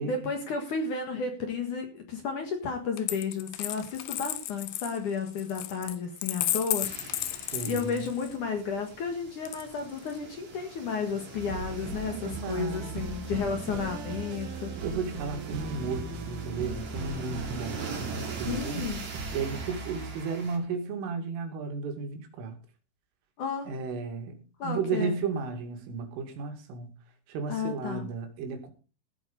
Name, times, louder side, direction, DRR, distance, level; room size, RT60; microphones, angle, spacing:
voice 1, 0.0-7.0 7.3-14.8 18.5-19.1 23.4-23.7 24.6-25.2 27.5-28.1, left 5 dB, 55° left, 2.4 m, -32 dB
Coin (dropping), 3.0-8.4 9.5-10.2, left 15 dB, 80° left, 2.5 m, -34 dB
sound 1, 6.8-20.6, right 4 dB, 40° right, 4.3 m, -43 dB
voice 2, 7.5-8.0 12.1-13.0 14.8-18.9 19.3-22.6 23.7-26.9 27.3-28.7, right 5 dB, 85° right, 4.8 m, -34 dB
sound 2, 11.4-20.2, right 4 dB, 65° right, 2.2 m, -38 dB
15.5 x 8.8 x 5.3 m
omnidirectional pair, 5.6 m